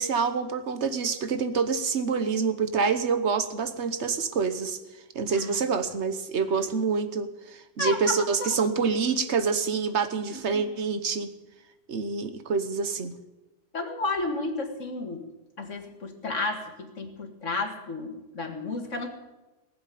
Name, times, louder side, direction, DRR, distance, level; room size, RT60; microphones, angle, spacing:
voice 1, 0.0-4.8 5.1-11.3 11.9-13.1, right 5 dB, 65° right, 10 dB, 1.4 m, -27 dB
voice 2, 5.3-5.6 7.8-8.6 10.5-10.7 13.7-15.3 15.6-19.1, left 3 dB, 85° left, 4 dB, 2.3 m, -32 dB
19.0 x 7.7 x 9.2 m, 1.1 s
omnidirectional pair, 1.2 m